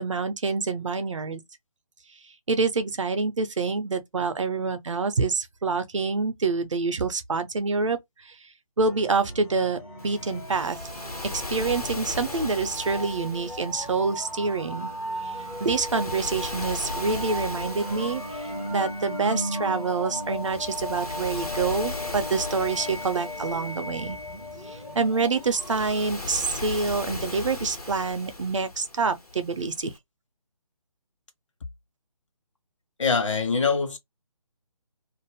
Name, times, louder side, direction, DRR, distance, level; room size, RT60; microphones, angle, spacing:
voice 1, 0.0-1.4 2.5-8.0 8.8-10.8 11.5-14.9 15.6-18.4 18.7-24.2 24.7-29.9, right 4 dB, 55° right, 0.7 m, -27 dB
sound 1, 8.9-26.4, equal, 5° left, 0.5 m, -36 dB
Waves surf, 10.0-30.0, left 2 dB, 85° left, 1.1 m, -38 dB
voice 2, 33.0-34.0, left 5 dB, 55° left, 1.0 m, -23 dB
2.5 x 2.1 x 3.4 m
figure-of-eight pair, 145°, 19 cm